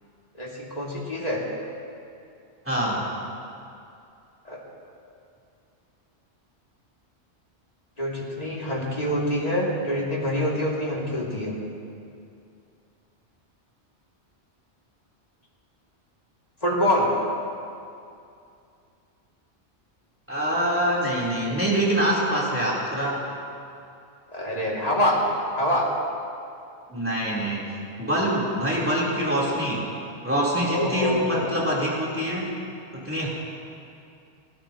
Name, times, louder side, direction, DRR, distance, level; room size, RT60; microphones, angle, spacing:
voice 1, 0.4-1.4 4.4-4.6 8.0-11.5 16.6-17.1 24.3-25.2 25.6-25.9 30.6-31.6, equal, 35° left, -4 dB, 2.7 m, -25 dB
voice 2, 2.7-3.0 20.3-23.2 26.9-27.6 28.0-29.8 30.2-32.5 32.9-33.3, equal, 10° right, -6 dB, 3.6 m, -25 dB
29.5 x 12.5 x 3.0 m, 2.5 s
omnidirectional pair, 1.1 m